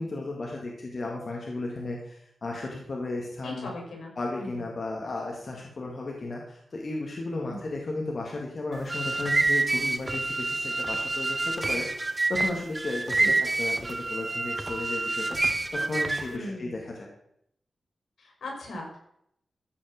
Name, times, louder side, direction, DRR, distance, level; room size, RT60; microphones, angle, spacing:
voice 1, 0.0-3.7 4.2-15.4 15.7-17.1, left 2 dB, 45° left, -1 dB, 2.2 m, -34 dB
voice 2, 3.4-4.1 4.4-4.6 7.5-7.6 13.2-13.3 16.3-16.8 18.2-19.0, left 1 dB, 85° left, 0 dB, 5.3 m, -39 dB
sound 1, 8.7-16.4, right 2 dB, 25° right, 0.8 m, -27 dB
14.5 x 5.6 x 6.7 m, 0.73 s
wide cardioid pair, 150°, 0 cm